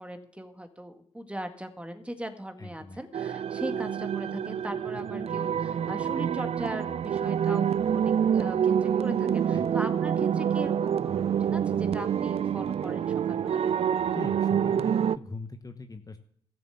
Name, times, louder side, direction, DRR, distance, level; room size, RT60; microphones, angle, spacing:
voice 1, 0.0-13.6, right 1 dB, 10° right, 6 dB, 1.8 m, -39 dB
voice 2, 2.6-3.0 9.5-9.7 14.1-16.2, left 3 dB, 25° left, 7 dB, 1.0 m, -40 dB
sound 1, 3.1-15.2, right 8 dB, 40° right, 0.4 m, -27 dB
13.5 x 7.1 x 7.1 m, 0.66 s
hypercardioid pair, 55°, 15 cm